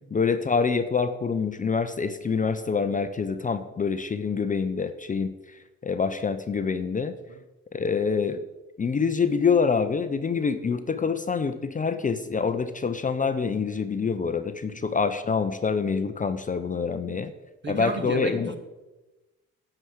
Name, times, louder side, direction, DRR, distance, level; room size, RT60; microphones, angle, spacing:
voice 1, 0.1-7.1 7.7-8.4 8.8-17.3 17.7-18.5, left 5 dB, 25° left, 9 dB, 0.6 m, -26 dB
voice 2, 17.6-18.6, right 3 dB, 35° right, 7 dB, 1.5 m, -34 dB
10.0 x 5.0 x 7.9 m, 1.1 s
cardioid pair, 90°, 30 cm